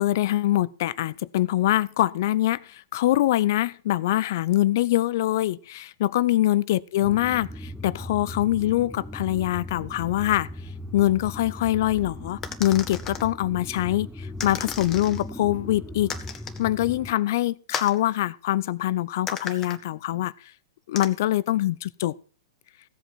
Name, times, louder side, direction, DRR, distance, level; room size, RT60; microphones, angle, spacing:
voice 1, 0.0-10.5 10.9-16.1 16.6-20.3 20.9-22.2, left 14 dB, 50° left, 0.5 m, -24 dB
sound 1, 7.0-17.1, left 1 dB, ahead, 0.9 m, -38 dB
sound 2, 12.4-13.3 14.4-15.2 16.1-16.6 17.7-18.0 19.3-19.8 21.0-21.1, left 6 dB, 20° left, 1.5 m, -34 dB
16.0 x 8.0 x 4.2 m
figure-of-eight pair, 105°, 2 cm